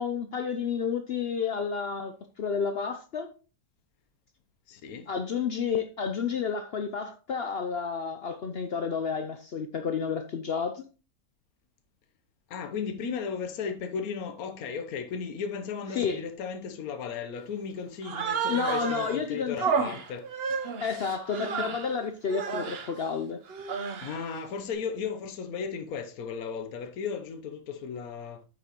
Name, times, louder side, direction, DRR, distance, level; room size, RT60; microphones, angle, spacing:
voice 1, 0.0-3.3 5.1-10.9 16.0-16.2 18.5-19.6 20.8-23.4, left 6 dB, 55° left, 0.7 m, -31 dB
voice 2, 4.7-5.1 12.5-20.3 24.0-28.4, left 6 dB, 80° left, 1.3 m, -35 dB
Human voice, 18.0-19.2 19.6-21.9 22.3-22.9 23.5-24.2, right 6 dB, 50° right, 0.9 m, -31 dB
8.4 x 6.2 x 3.0 m
omnidirectional pair, 1.5 m